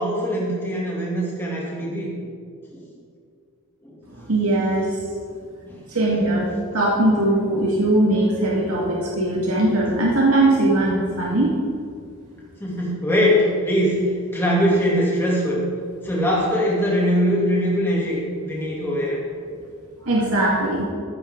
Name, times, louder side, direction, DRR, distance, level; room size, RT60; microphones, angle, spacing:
voice 1, 0.0-2.1 2.7-2.8 3.8-4.3 5.6-5.9 12.6-15.6 16.0-19.2, equal, 10° left, -5 dB, 2.7 m, -22 dB
voice 2, 4.1-5.0 5.9-11.5 20.0-20.8, right 1 dB, 80° right, -4 dB, 1.9 m, -20 dB
14.5 x 11.0 x 3.8 m, 2.2 s
head